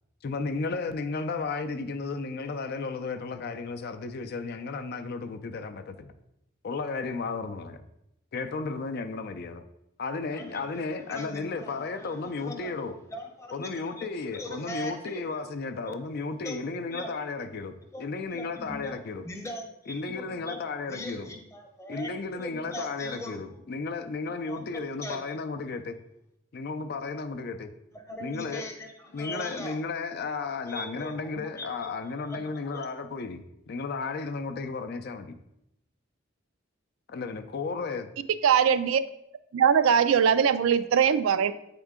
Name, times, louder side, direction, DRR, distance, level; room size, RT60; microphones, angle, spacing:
voice 1, 0.2-6.1 6.6-7.8 8.3-9.6 10.0-12.9 13.5-19.2 19.9-21.3 21.9-26.0 26.5-27.7 28.2-28.7 29.1-35.3 37.1-38.1, left 4 dB, 50° left, 0.4 m, -34 dB
voice 2, 10.3-12.8 13.1-15.4 15.9-16.0 16.4-16.6 16.9-17.1 17.9-18.1 18.3-19.0 19.2-20.6 20.9-23.6 24.2-25.4 27.9-29.8 30.7-32.9, left 1 dB, 15° left, 0.8 m, -41 dB
voice 3, 38.4-39.0 39.5-41.5, right 7 dB, 80° right, 0.3 m, -21 dB
8.0 x 3.7 x 3.6 m
head